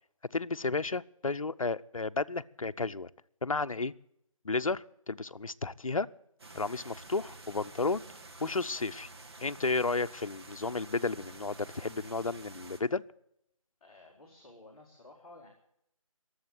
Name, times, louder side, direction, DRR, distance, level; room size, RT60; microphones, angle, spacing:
voice 1, 0.3-3.1 3.4-3.9 4.4-6.1 6.5-8.0 8.4-9.1 9.4-13.0, left 3 dB, 70° left, 13 dB, 0.7 m, -32 dB
sound 1, 6.4-12.8, right 2 dB, 45° right, 2.2 m, -50 dB
voice 2, 13.8-15.5, left 2 dB, 10° left, -6 dB, 2.0 m, -54 dB
22.5 x 8.0 x 7.7 m, 0.76 s
figure-of-eight pair, 160°, 18 cm